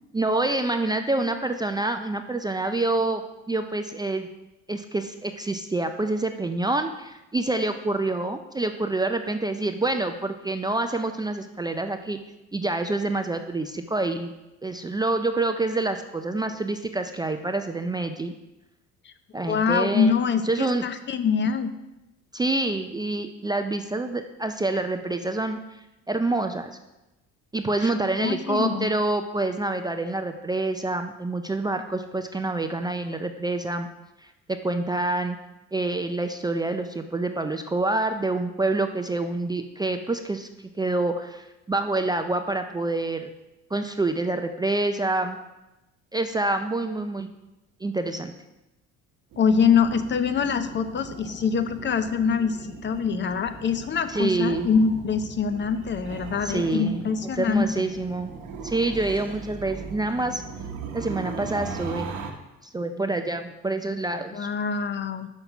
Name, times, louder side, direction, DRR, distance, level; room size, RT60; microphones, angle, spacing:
voice 1, 0.0-3.2 3.5-4.3 4.7-12.2 12.5-14.3 14.6-18.3 19.3-20.1 20.4-20.9 22.3-26.7 27.5-33.9 34.2-35.4 35.7-40.5 40.8-43.3 43.7-45.4 46.1-47.3 47.8-48.3 54.1-54.7 56.4-58.3 58.6-60.4 60.9-62.1 62.7-64.5, right 2 dB, 15° right, 6 dB, 0.4 m, -27 dB
voice 2, 19.4-21.7 27.8-27.9 28.2-28.9 49.4-52.6 52.8-57.9 64.3-65.3, left 6 dB, 35° left, 10 dB, 0.6 m, -24 dB
sound 1, 49.3-62.3, right 4 dB, 75° right, 1.1 m, -39 dB
6.0 x 5.3 x 5.9 m, 0.98 s
cardioid pair, 95°, 31 cm